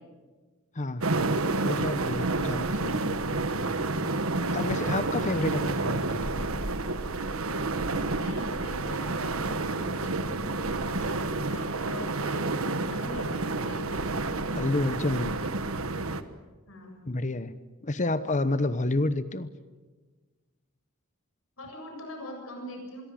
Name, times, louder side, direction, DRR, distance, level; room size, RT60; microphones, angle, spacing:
voice 1, 0.7-1.1 1.6-3.2 4.5-6.4 14.5-15.4 17.1-17.6 17.8-19.5, left 2 dB, 35° left, 13 dB, 1.0 m, -29 dB
sound 1, 1.0-16.2, right 3 dB, 70° right, 1.4 m, -29 dB
voice 2, 8.0-11.2 11.5-14.1 16.7-17.0 21.6-23.0, left 1 dB, 70° left, 2 dB, 7.5 m, -42 dB
26.5 x 22.0 x 7.8 m, 1.3 s
head